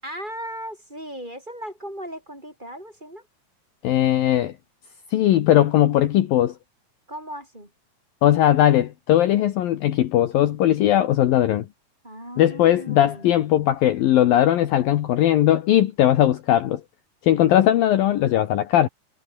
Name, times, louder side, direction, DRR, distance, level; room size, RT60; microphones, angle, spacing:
voice 1, 0.0-3.2 7.1-7.7 12.0-13.3, equal, 10° right, 8.0 m, -37 dB
voice 2, 3.8-4.5 5.1-6.5 8.2-11.7 12.4-16.8 17.2-18.9, left 12 dB, 65° left, 2.8 m, -19 dB
omnidirectional pair, 4.8 m